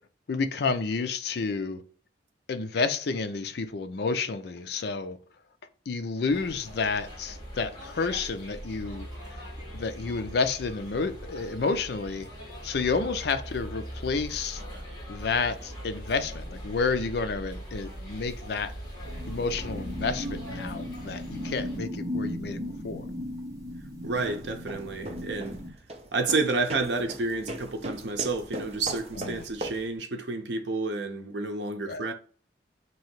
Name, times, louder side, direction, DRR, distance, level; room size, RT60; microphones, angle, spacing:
voice 1, 0.3-1.8 2.5-5.2 5.9-9.1 9.7-12.3 12.6-14.6 15.1-18.7 19.3-22.6 22.8-23.0 29.3-29.4 31.9-32.1, left 4 dB, 60° left, 0.5 m, -30 dB
sound 1, 6.3-21.8, equal, 25° left, 1.9 m, -41 dB
sound 2, 19.0-25.7, left 1 dB, 20° right, 1.1 m, -37 dB
sound 3, 24.0-29.9, right 1 dB, 35° right, 0.6 m, -39 dB
voice 2, 24.0-25.6 26.1-32.1, right 3 dB, 70° right, 0.7 m, -30 dB
3.0 x 2.7 x 4.4 m
head